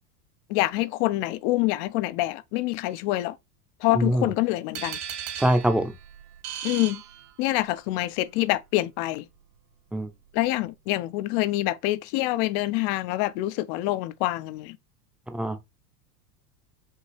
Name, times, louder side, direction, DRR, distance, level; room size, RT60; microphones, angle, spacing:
voice 1, 0.5-3.4 3.8-5.0 6.6-7.0 7.4-9.3 10.3-14.8, left 17 dB, 50° left, 0.6 m, -26 dB
voice 2, 3.9-4.3 5.4-5.9 9.9-10.1 15.3-15.6, right 1 dB, ahead, 0.6 m, -23 dB
sound 1, 4.7-7.8, right 9 dB, 65° right, 2.4 m, -37 dB
5.6 x 2.9 x 3.2 m
supercardioid pair, 110°, 47 cm